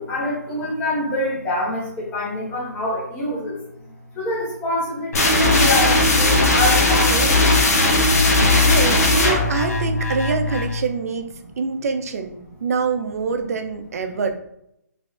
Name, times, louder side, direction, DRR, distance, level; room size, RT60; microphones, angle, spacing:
voice 1, 0.0-3.6 4.1-7.4, left 1 dB, 15° left, -6 dB, 1.1 m, -25 dB
sound 1, 5.1-10.8, left 2 dB, 60° left, 1.0 m, -17 dB
voice 2, 8.3-14.3, right 5 dB, 60° right, 7 dB, 0.5 m, -25 dB
3.4 x 3.3 x 2.5 m, 0.78 s
figure-of-eight pair, 145°, 9 cm